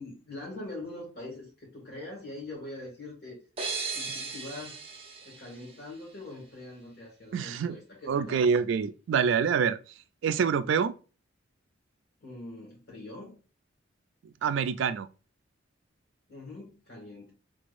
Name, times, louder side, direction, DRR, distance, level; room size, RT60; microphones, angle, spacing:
voice 1, 0.0-3.4 3.9-4.8 5.2-8.5 12.2-13.4 16.3-17.3, left 2 dB, 50° left, 2.1 m, -43 dB
sound 1, 3.6-6.3, right 4 dB, 30° right, 0.7 m, -37 dB
voice 2, 7.3-7.8 8.1-9.8 10.2-10.9 14.4-15.1, right 6 dB, 70° right, 0.3 m, -26 dB
3.7 x 3.4 x 2.5 m
head